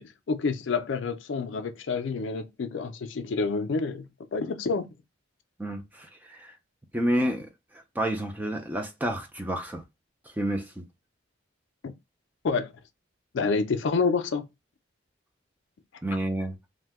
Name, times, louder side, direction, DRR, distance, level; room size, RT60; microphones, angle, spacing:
voice 1, 0.0-4.8 11.8-11.9 12.4-12.7 13.3-14.5, left 4 dB, 70° left, 0.4 m, -28 dB
voice 2, 5.6-6.6 6.9-9.8 10.3-10.8 16.0-16.5, right 1 dB, 10° right, 0.4 m, -30 dB
2.7 x 2.1 x 3.4 m
head